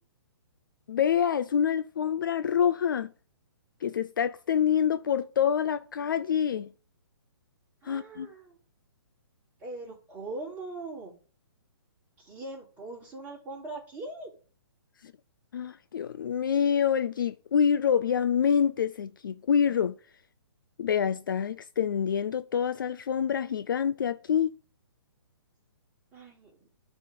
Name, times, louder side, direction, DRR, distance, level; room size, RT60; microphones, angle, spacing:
voice 1, 0.9-3.1 3.8-6.7 7.8-8.3 15.5-20.0 20.8-24.5, left 8 dB, 50° left, 0.4 m, -26 dB
voice 2, 7.8-8.6 9.6-11.2 12.2-14.3 26.1-26.7, right 2 dB, 10° right, 2.6 m, -41 dB
8.9 x 3.5 x 6.6 m
hypercardioid pair, 170°, 14 cm